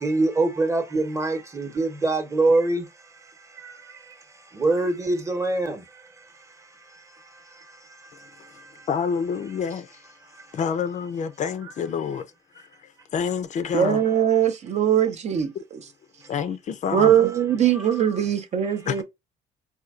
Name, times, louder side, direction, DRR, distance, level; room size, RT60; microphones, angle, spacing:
voice 1, 0.0-2.8 3.6-3.8 4.5-5.8 17.2-17.4 17.8-18.0, right 2 dB, 15° right, 0.9 m, -24 dB
voice 2, 8.9-10.0 10.5-12.3 12.5-14.0 16.3-17.1 18.9-19.0, left 6 dB, 45° left, 0.5 m, -28 dB
voice 3, 13.7-15.5 16.9-19.0, right 9 dB, 40° right, 0.5 m, -21 dB
4.3 x 2.3 x 2.4 m
cardioid pair, 110°, 17 cm